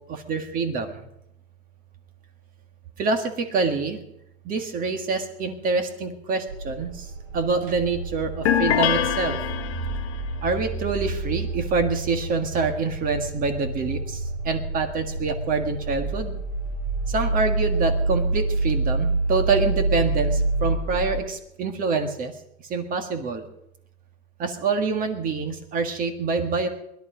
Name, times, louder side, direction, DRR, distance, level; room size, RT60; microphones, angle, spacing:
voice 1, 0.1-1.0 3.0-4.0 4.5-7.1 7.3-9.4 10.4-16.4 17.1-22.3 22.7-23.5 24.4-26.7, right 4 dB, 25° right, 6 dB, 1.7 m, -26 dB
sound 1, 6.5-21.2, right 2 dB, 70° right, 4.6 m, -28 dB
sound 2, 8.4-10.2, left 10 dB, 75° left, 1.3 m, -24 dB
20.5 x 12.0 x 5.1 m, 0.81 s
supercardioid pair, 160°, 34 cm